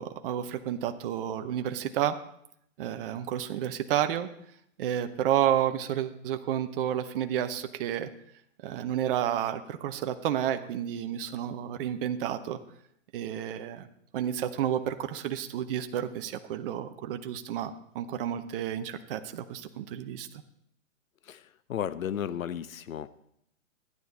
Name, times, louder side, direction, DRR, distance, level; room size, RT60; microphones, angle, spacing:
voice 1, 0.0-2.2 2.8-4.3 4.8-8.1 8.6-12.6 13.1-13.9 14.1-20.3, right 10 dB, 45° right, 8 dB, 0.8 m, -31 dB
voice 2, 21.2-23.1, left 9 dB, 85° left, 15 dB, 0.7 m, -34 dB
13.5 x 9.7 x 4.0 m, 0.72 s
hypercardioid pair, 130°, 39 cm